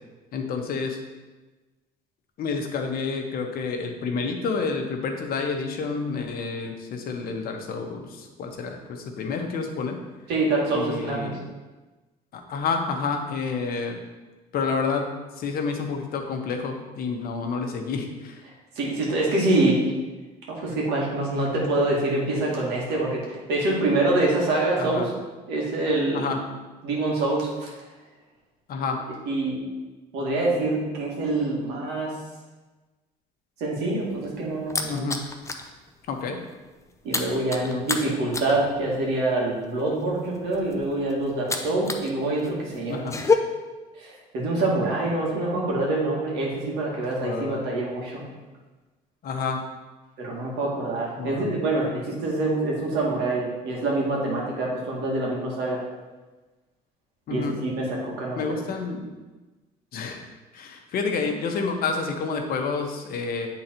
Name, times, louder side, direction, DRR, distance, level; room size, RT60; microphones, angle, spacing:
voice 1, 0.3-1.0 2.4-10.0 10.7-11.3 12.3-14.0 14.5-15.1 15.4-18.4 24.8-25.1 26.1-26.4 28.7-29.0 34.9-35.2 36.1-36.4 37.6-38.1 42.9-43.2 47.2-47.6 49.2-49.6 51.2-51.6 57.3-57.6 58.4-59.1 59.9-60.2 60.5-63.5, left 4 dB, 60° left, 4 dB, 1.1 m, -29 dB
voice 2, 10.3-11.3 18.8-19.8 20.5-25.1 25.5-26.3 26.8-27.7 29.2-29.6 30.1-32.1 33.6-35.1 37.0-43.2 44.0-48.2 50.2-55.8 57.3-58.6, right 2 dB, 85° right, -3 dB, 2.1 m, -25 dB
sound 1, 33.9-35.7 36.0-36.3 36.5-42.1 42.4-43.3, left 4 dB, 15° left, 0.6 m, -29 dB
8.4 x 3.9 x 4.4 m, 1.2 s
cardioid pair, 110°, 17 cm